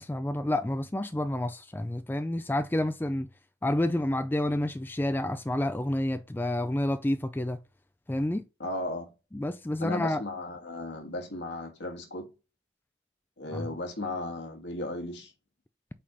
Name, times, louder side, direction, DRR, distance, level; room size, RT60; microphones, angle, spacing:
voice 1, 0.0-3.3 3.6-7.6 8.1-8.4 9.3-10.2 13.5-13.7, left 1 dB, 10° left, 0.3 m, -29 dB
voice 2, 8.6-9.1 9.8-12.3 13.4-15.3, left 2 dB, 65° left, 1.6 m, -35 dB
5.1 x 4.3 x 5.3 m
head